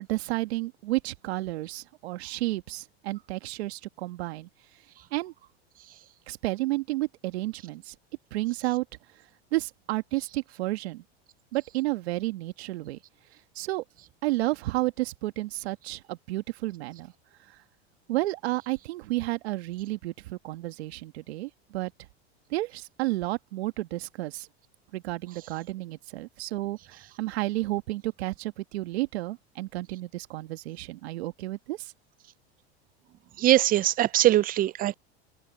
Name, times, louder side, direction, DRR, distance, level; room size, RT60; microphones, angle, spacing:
voice 1, 0.0-4.5 5.1-5.3 6.3-8.0 8.3-8.9 9.5-11.0 11.5-13.0 13.6-13.8 14.2-17.1 17.5-17.6 18.1-21.9 22.5-24.5 24.9-31.9, right 19 dB, 75° right, 1.9 m, -31 dB
voice 2, 33.4-35.0, right 14 dB, 30° right, 0.4 m, -21 dB
open air
hypercardioid pair, 105°, 32 cm